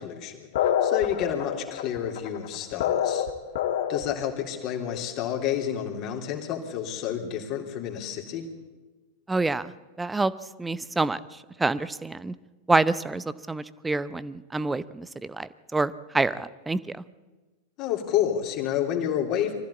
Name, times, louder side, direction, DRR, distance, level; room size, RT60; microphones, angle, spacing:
voice 1, 0.0-3.3 3.9-8.5 17.8-19.5, left 10 dB, 40° left, 2 dB, 3.4 m, -29 dB
sound 1, 0.5-4.3, left 9 dB, 55° left, 1.5 m, -26 dB
voice 2, 9.3-9.7 10.0-10.3 10.6-12.3 12.7-17.0, right 3 dB, 10° right, 17 dB, 0.8 m, -27 dB
24.0 x 15.0 x 8.4 m, 1.3 s
figure-of-eight pair, 90°, 0 cm